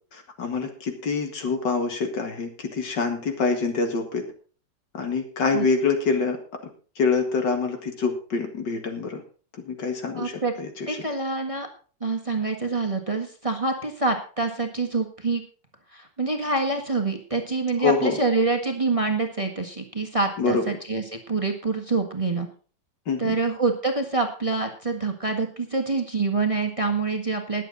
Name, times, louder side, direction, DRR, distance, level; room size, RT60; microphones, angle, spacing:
voice 1, 0.1-4.2 4.9-6.4 7.0-9.2 9.6-11.0 17.8-18.2 20.4-20.6 23.1-23.4, left 4 dB, 70° left, 5 dB, 2.5 m, -26 dB
voice 2, 10.1-10.5 10.9-11.7 12.0-15.4 15.9-22.5 23.2-27.6, right 3 dB, 20° right, 4 dB, 1.5 m, -26 dB
20.5 x 7.6 x 4.0 m, 0.39 s
omnidirectional pair, 2.0 m